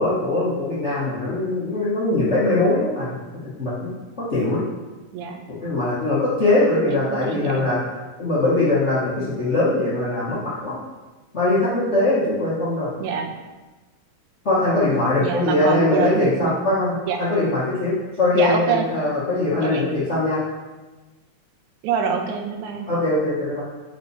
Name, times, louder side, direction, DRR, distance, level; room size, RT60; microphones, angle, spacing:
voice 1, 0.0-3.9 4.2-4.6 5.6-7.8 8.2-10.7 11.3-12.9 14.4-20.4 22.9-23.6, left 2 dB, 85° left, -9 dB, 0.6 m, -21 dB
voice 2, 5.1-5.4 6.9-7.7 13.0-13.3 15.2-16.5 17.1-17.2 18.3-18.9 19.6-19.9 21.8-22.9, right 6 dB, 90° right, 4 dB, 2.1 m, -25 dB
5.4 x 5.3 x 4.6 m, 1.2 s
omnidirectional pair, 3.3 m